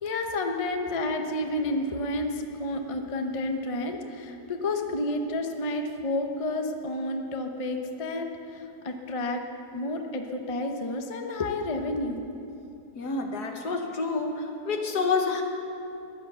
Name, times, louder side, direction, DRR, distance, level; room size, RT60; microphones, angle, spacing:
voice 1, 0.0-9.4 9.7-12.3, left 2 dB, 25° left, 4 dB, 0.8 m, -30 dB
voice 2, 13.0-15.4, left 4 dB, 70° left, 3 dB, 1.9 m, -28 dB
16.0 x 11.0 x 6.9 m, 2.7 s
omnidirectional pair, 1.8 m